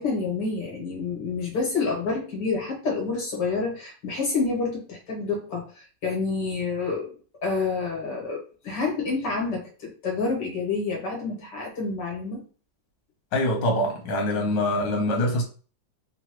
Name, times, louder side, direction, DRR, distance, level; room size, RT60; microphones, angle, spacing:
voice 1, 0.0-12.4, left 4 dB, 75° left, 1.8 m, -28 dB
voice 2, 13.3-15.4, left 1 dB, 90° left, 1.5 m, -24 dB
3.8 x 2.0 x 2.9 m
omnidirectional pair, 1.9 m